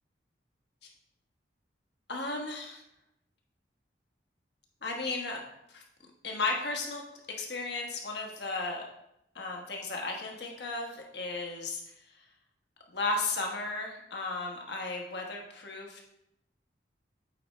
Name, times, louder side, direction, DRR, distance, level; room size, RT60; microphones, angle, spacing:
voice 1, 2.1-2.8 4.8-5.4 5.7-5.8 6.2-7.0 7.4-8.8 9.3-11.8 12.9-16.0, left 3 dB, 65° left, 0 dB, 1.3 m, -34 dB
8.4 x 4.3 x 3.2 m, 0.82 s
head